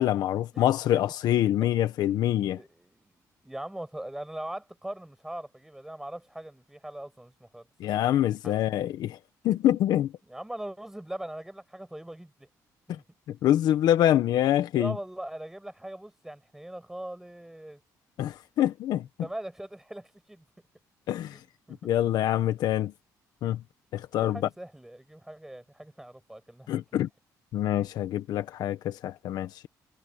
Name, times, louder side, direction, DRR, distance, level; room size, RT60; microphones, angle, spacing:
voice 1, 0.0-2.6 7.8-9.2 9.4-10.1 12.9-13.0 13.3-15.0 18.2-19.1 21.1-21.4 21.8-22.9 23.4-23.6 23.9-24.5 26.7-27.1 27.5-29.7, left 12 dB, 75° left, 1.6 m, -25 dB
voice 2, 1.3-1.7 2.5-7.9 8.4-8.6 10.3-12.5 12.9-13.0 14.7-17.8 19.2-20.4 21.3-21.8 24.2-26.7, right 1 dB, 5° right, 7.7 m, -41 dB
cardioid pair, 120°, 7 cm